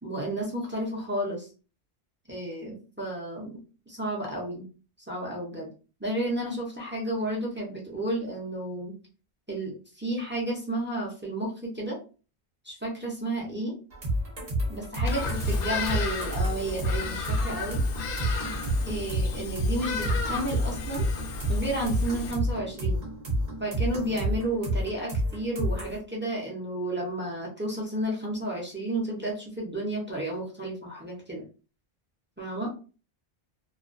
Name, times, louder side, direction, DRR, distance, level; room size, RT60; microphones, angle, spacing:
voice 1, 0.0-1.5 2.3-3.6 3.9-4.7 5.1-5.7 6.0-9.0 9.5-12.0 12.6-13.8 14.7-17.8 18.8-21.1 21.5-23.0 23.6-31.4 32.4-32.7, right 1 dB, 15° right, -3 dB, 0.4 m, -32 dB
sound 1, 13.9-26.0, equal, 50° right, 0.8 m, -30 dB
Bird vocalization bird call bird song, 15.0-22.3, left 4 dB, 65° left, 0.7 m, -33 dB
2.3 x 2.2 x 2.5 m, 0.35 s
omnidirectional pair, 1.1 m